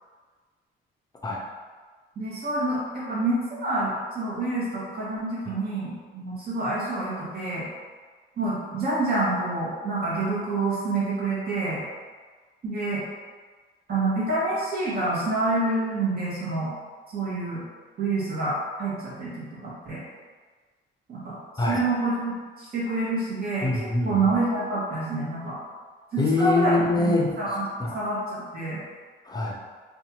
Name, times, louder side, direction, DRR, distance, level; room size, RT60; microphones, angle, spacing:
voice 1, 2.2-7.6 8.4-11.8 12.6-13.0 13.9-16.7 17.1-17.6 18.0-20.0 21.1-21.4 21.7-23.6 24.0-25.6 26.1-26.7 27.1-27.6 27.9-28.8, right 2 dB, 50° right, -7 dB, 1.0 m, -27 dB
voice 2, 23.6-24.3 26.2-28.1 29.2-29.6, left 3 dB, 20° left, -2 dB, 0.5 m, -25 dB
2.7 x 2.3 x 2.8 m, 1.4 s
cardioid pair, 90°, 20 cm